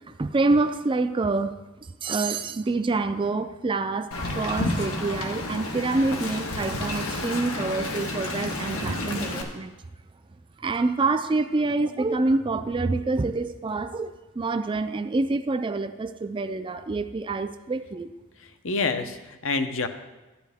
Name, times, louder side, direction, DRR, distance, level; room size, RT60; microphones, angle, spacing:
voice 1, 0.1-9.7 10.6-18.1, right 3 dB, 25° right, 10 dB, 0.4 m, -27 dB
Wind, 4.1-9.4, left 2 dB, 85° left, 1.3 m, -30 dB
voice 2, 18.4-19.9, left 4 dB, 65° left, 8 dB, 0.8 m, -28 dB
13.0 x 9.1 x 3.5 m, 1.1 s
head